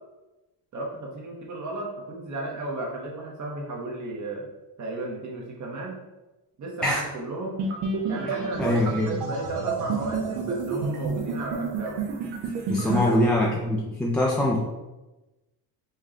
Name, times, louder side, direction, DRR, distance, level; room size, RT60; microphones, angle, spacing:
voice 1, 0.7-4.5 4.8-6.0 6.6-7.6 8.1-12.0 12.8-13.0, right 2 dB, 45° right, -2 dB, 0.9 m, -34 dB
sound 1, 7.6-13.2, right 4 dB, 80° right, 1.0 m, -29 dB
voice 2, 8.3-9.1 12.7-14.6, left 1 dB, 5° left, -4 dB, 0.4 m, -24 dB
5.4 x 2.2 x 3.7 m, 1.1 s
cardioid pair, 140°, 42 cm